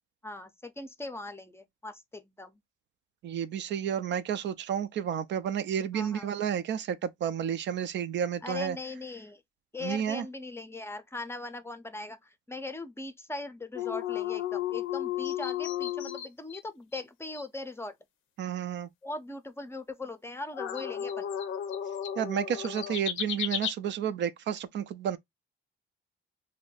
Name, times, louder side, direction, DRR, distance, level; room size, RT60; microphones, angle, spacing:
voice 1, 0.2-2.6 5.9-6.3 8.4-9.4 9.7-18.0 19.0-21.2, left 2 dB, 10° left, 0.5 m, -40 dB
voice 2, 3.2-8.8 9.8-10.3 18.4-18.9 22.2-25.2, right 8 dB, 65° right, 0.4 m, -31 dB
sound 1, 13.7-16.6 16.9-17.0 17.3-17.4 20.5-23.7, left 11 dB, 85° left, 0.5 m, -33 dB
2.6 x 2.1 x 3.8 m
cardioid pair, 90°, 20 cm